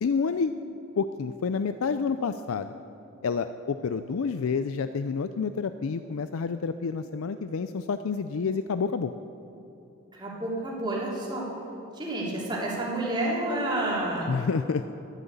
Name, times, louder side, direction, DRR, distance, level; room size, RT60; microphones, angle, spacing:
voice 1, 0.0-0.5 1.0-2.7 3.2-9.1 14.3-14.8, left 5 dB, 75° left, 11 dB, 0.4 m, -29 dB
voice 2, 10.1-11.4 11.9-14.3, right 1 dB, 20° right, -5 dB, 3.2 m, -29 dB
12.5 x 11.0 x 8.2 m, 2.9 s
head